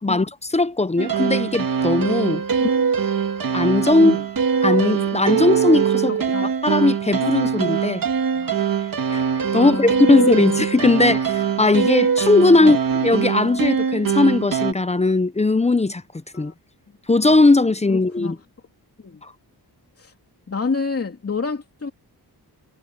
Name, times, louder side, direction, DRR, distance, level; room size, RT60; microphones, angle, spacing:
voice 1, 0.0-2.4 3.5-4.2 4.6-6.1 6.6-8.0 9.1-9.2 9.5-12.8 13.0-16.0 16.3-16.5 17.1-18.4 19.2-19.3, left 2 dB, 15° left, 0.6 m, -18 dB
sound 1, 1.0-14.7, right 7 dB, 60° right, 2.0 m, -22 dB
voice 2, 6.0-6.5 8.3-8.6 9.5-10.4 12.6-12.8 16.3-16.5 17.9-18.4 19.0-19.2 20.0-20.1 20.5-21.9, left 4 dB, 35° left, 2.9 m, -29 dB
wide cardioid pair, 120°, 39 cm